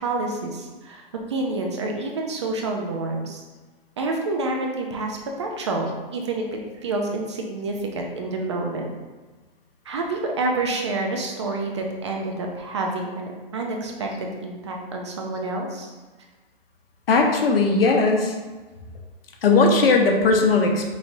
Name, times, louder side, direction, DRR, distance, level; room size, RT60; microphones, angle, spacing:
voice 1, 0.0-3.4 4.0-6.4 6.8-8.9 9.9-15.9, right 2 dB, 30° right, 1 dB, 0.4 m, -28 dB
voice 2, 17.1-18.4 19.4-20.9, left 3 dB, 80° left, 2 dB, 0.9 m, -18 dB
5.1 x 3.1 x 2.6 m, 1.3 s
hypercardioid pair, 165°, 29 cm